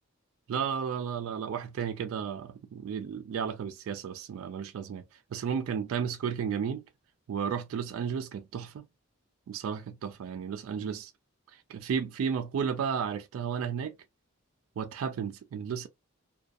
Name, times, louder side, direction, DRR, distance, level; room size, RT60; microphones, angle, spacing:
voice 1, 0.5-5.1 5.3-6.8 7.3-8.9 9.5-11.1 11.5-13.9 14.8-15.9, right 7 dB, 85° right, 0.3 m, -33 dB
2.3 x 2.3 x 2.5 m
head